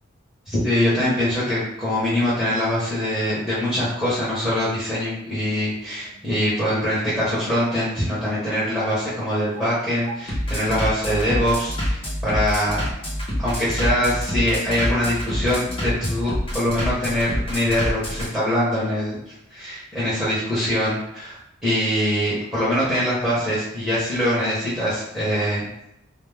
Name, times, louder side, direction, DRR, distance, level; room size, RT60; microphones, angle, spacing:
voice 1, 0.5-12.8 13.4-19.2 19.5-25.7, equal, ahead, -11 dB, 0.8 m, -23 dB
Bass drum, 2.3-18.3, equal, 25° left, 0.7 m, -28 dB
2.2 x 2.2 x 3.3 m, 0.82 s
head